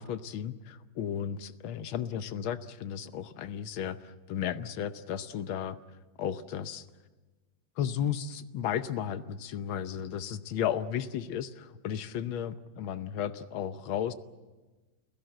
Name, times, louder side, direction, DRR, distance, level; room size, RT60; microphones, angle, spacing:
voice 1, 0.0-5.8 6.2-6.9 7.8-14.1, left 9 dB, 80° left, 12 dB, 1.7 m, -34 dB
29.5 x 16.5 x 7.8 m, 1.3 s
omnidirectional pair, 2.2 m